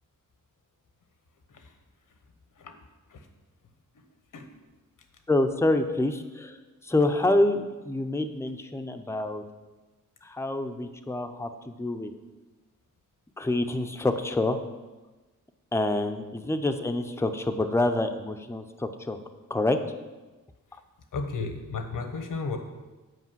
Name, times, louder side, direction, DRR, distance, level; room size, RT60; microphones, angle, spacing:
voice 1, 5.3-6.6 6.8-9.4 10.2-12.1 13.4-14.6 15.7-19.2 19.5-19.8, left 2 dB, 10° left, 7 dB, 0.6 m, -27 dB
voice 2, 21.1-22.6, left 4 dB, 75° left, 6 dB, 1.2 m, -34 dB
8.4 x 5.4 x 7.5 m, 1.2 s
wide cardioid pair, 95°, 32 cm